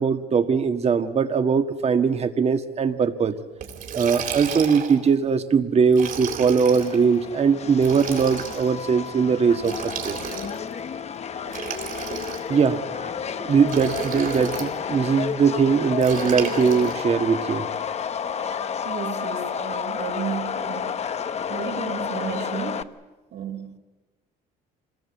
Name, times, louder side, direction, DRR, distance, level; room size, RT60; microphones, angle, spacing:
voice 1, 0.0-3.4 3.9-9.7 10.0-10.2 12.5-12.8 13.4-17.7, right 6 dB, 40° right, 9 dB, 1.7 m, -21 dB
Liquid, 3.6-5.0 5.9-7.0 7.8-8.7 9.6-10.7 11.5-12.7 13.7-14.7 16.0-17.0, right 7 dB, 55° right, 4.0 m, -32 dB
Subway metro underground, 6.7-22.8, left 7 dB, 40° left, 1.0 m, -31 dB
voice 2, 18.8-21.2 21.5-23.0 23.3-23.8, right 7 dB, 75° right, 4 dB, 4.3 m, -33 dB
26.5 x 20.0 x 8.2 m, 1.2 s
cardioid pair, 110°, 17 cm